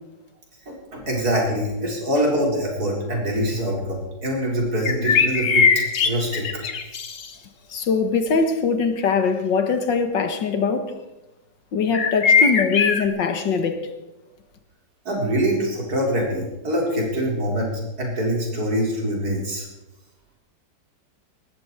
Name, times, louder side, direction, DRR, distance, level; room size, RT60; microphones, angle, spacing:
voice 1, 0.7-5.7 6.0-6.4 15.0-17.7 18.0-19.6, equal, 55° right, 4.9 m, -24 dB
sound 1, 4.9-7.3 11.9-13.1, left 5 dB, 55° left, 1.6 m, -20 dB
voice 2, 7.7-10.9 11.7-13.9, left 5 dB, 80° left, 2.1 m, -22 dB
18.5 x 14.5 x 4.8 m
omnidirectional pair, 2.0 m